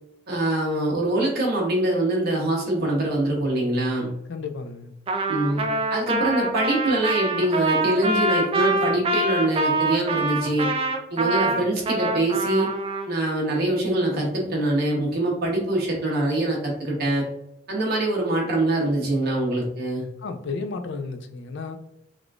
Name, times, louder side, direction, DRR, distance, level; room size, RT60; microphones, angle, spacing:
voice 1, 0.3-4.1 5.3-5.6 5.9-10.7 11.1-12.7 13.1-17.3 17.7-20.1, right 1 dB, 55° right, -2 dB, 0.9 m, -24 dB
voice 2, 4.3-4.9 20.2-21.8, left 4 dB, 65° left, 7 dB, 0.4 m, -33 dB
Trumpet, 5.1-13.1, right 2 dB, 30° right, 0.4 m, -25 dB
3.6 x 2.4 x 2.3 m, 0.83 s
head